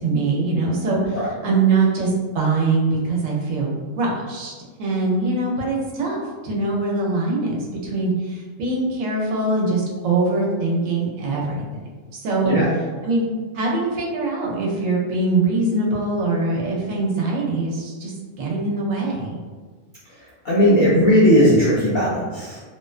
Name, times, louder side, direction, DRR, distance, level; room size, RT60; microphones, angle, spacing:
voice 1, 0.0-4.5 4.8-11.6 12.1-12.5 13.0-13.3 13.5-19.4, right 3 dB, 85° right, -2 dB, 1.0 m, -23 dB
voice 2, 20.4-22.6, equal, 65° left, -8 dB, 0.5 m, -17 dB
2.4 x 2.1 x 2.3 m, 1.4 s
omnidirectional pair, 1.3 m